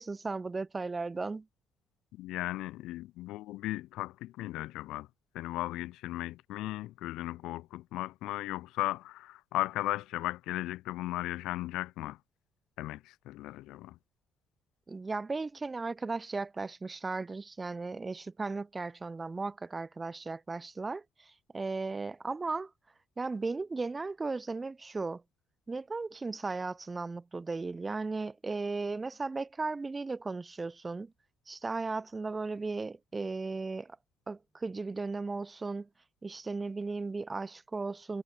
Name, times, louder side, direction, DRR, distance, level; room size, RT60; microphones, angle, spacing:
voice 1, 0.0-1.5 14.9-22.7 23.2-25.2 25.7-31.1 31.5-34.0 34.3-35.9 36.2-38.2, right 3 dB, 25° right, 1.0 m, -36 dB
voice 2, 2.1-5.1 5.3-12.2 12.8-14.0, left 16 dB, 70° left, 0.6 m, -36 dB
hypercardioid pair, 45°, 0 cm